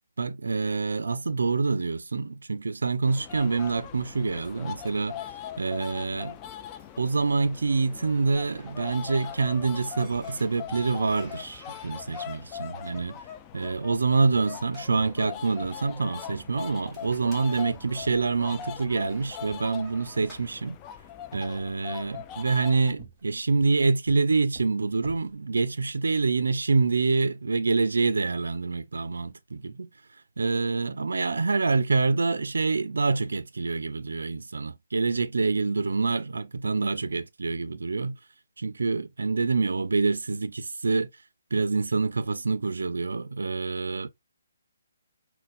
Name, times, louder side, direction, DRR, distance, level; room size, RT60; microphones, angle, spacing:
voice 1, 0.2-5.3 5.6-6.3 7.0-13.2 13.5-20.8 21.3-29.9 30.4-38.2 38.6-41.1 41.5-44.1, right 4 dB, 85° right, 0.4 m, -26 dB
sound 1, 3.1-22.9, left 10 dB, 20° left, 0.3 m, -41 dB
sound 2, 4.9-22.0, right 1 dB, ahead, 1.0 m, -56 dB
sound 3, 8.7-8.8 9.0-9.7 10.1-11.0 11.2-11.6 11.9-14.7 14.9-15.9 16.3-16.7 17.0-17.2 17.6-18.2 18.5-19.9 20.4-20.8 21.3-21.8 22.1-25.3, right 5 dB, 20° right, 1.1 m, -50 dB
4.1 x 2.0 x 2.3 m
hypercardioid pair, 155°, 0 cm